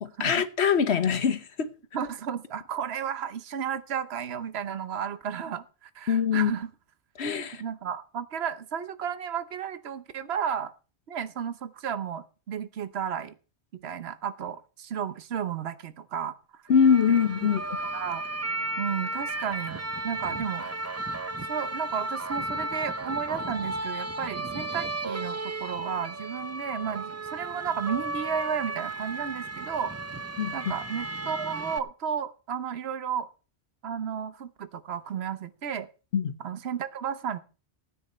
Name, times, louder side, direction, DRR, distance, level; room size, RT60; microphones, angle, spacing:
voice 1, 0.0-1.7 6.1-6.5 7.2-7.6 16.7-17.6 30.4-30.5 36.1-36.3, left 7 dB, 80° left, 1.3 m, -23 dB
voice 2, 1.9-6.7 7.5-10.7 11.1-13.3 13.7-16.6 17.1-17.2 17.9-18.2 18.8-20.7 21.5-29.9 30.5-33.3 33.8-35.9 36.4-37.4, right 8 dB, 75° right, 1.1 m, -33 dB
sound 1, 16.7-31.8, right 2 dB, 20° right, 0.4 m, -34 dB
16.5 x 9.6 x 4.3 m
omnidirectional pair, 1.1 m